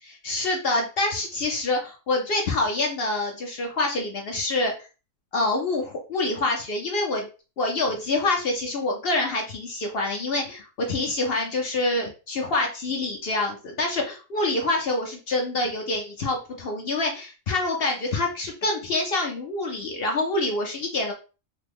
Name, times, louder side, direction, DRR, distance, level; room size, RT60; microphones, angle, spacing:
voice 1, 0.0-4.9 5.3-7.3 7.6-21.1, left 2 dB, 55° left, 2 dB, 0.7 m, -26 dB
3.3 x 2.2 x 3.4 m, 0.33 s
omnidirectional pair, 1.4 m